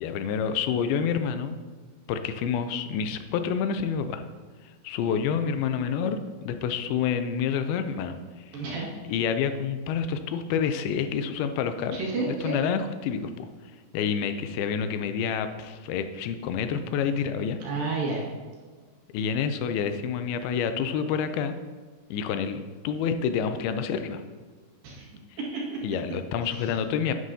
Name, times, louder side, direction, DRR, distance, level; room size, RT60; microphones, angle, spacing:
voice 1, 0.0-1.6 2.1-4.2 4.8-8.2 8.5-8.6 9.1-12.0 12.3-13.5 13.9-17.6 19.1-21.6 22.1-24.2 25.8-27.1, left 7 dB, 90° left, 9 dB, 2.5 m, -28 dB
voice 2, 8.5-8.9 11.9-12.6 17.6-18.2 24.8-25.1 25.4-25.8 26.5-26.7, right 3 dB, 70° right, -4 dB, 3.5 m, -30 dB
9.6 x 9.0 x 2.8 m, 1.4 s
omnidirectional pair, 4.3 m